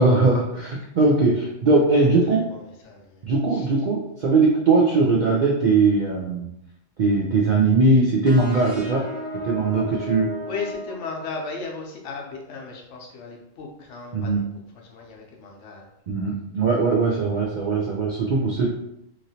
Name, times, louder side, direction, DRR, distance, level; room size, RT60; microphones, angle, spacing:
voice 1, 0.0-2.5 3.2-6.5 7.0-9.0 9.4-10.3 14.1-14.4 16.1-18.7, right 3 dB, 65° right, -3 dB, 0.4 m, -20 dB
voice 2, 1.9-3.2 3.5-3.7 10.4-14.4 14.7-15.9 16.8-17.8, left 4 dB, 70° left, 0 dB, 1.0 m, -37 dB
sound 1, 8.2-11.8, equal, 20° right, 0.8 m, -35 dB
3.0 x 2.6 x 2.7 m, 0.80 s
omnidirectional pair, 1.3 m